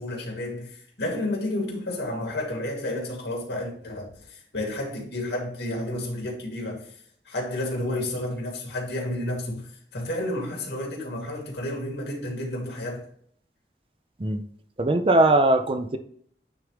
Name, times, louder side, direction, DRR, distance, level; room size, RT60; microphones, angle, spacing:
voice 1, 0.0-7.0 7.3-13.1, left 1 dB, 80° left, 2.5 m, -31 dB
voice 2, 14.8-16.0, right 2 dB, 30° right, 0.5 m, -20 dB
9.2 x 3.7 x 3.2 m
head